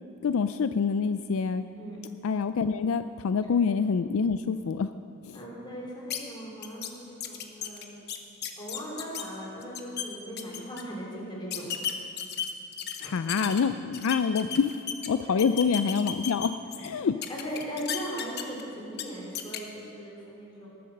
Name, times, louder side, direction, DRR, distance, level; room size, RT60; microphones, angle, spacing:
voice 1, 0.2-1.7 2.2-4.9 5.2-5.4 13.0-17.2, left 5 dB, 70° left, 11 dB, 0.4 m, -26 dB
voice 2, 5.3-7.9 8.6-11.7 13.0-13.1 15.3-15.4 17.3-20.7, equal, 20° left, -4 dB, 3.5 m, -39 dB
sound 1, 6.1-6.2 6.6-6.9 7.2-9.2 9.6-10.1 10.4-10.8 11.5-13.6 13.9-15.1 15.4-16.9 17.2-18.6 18.9-19.0 19.4-19.6, left 9 dB, 50° left, 1.0 m, -34 dB
19.0 x 8.6 x 6.6 m, 2.6 s
head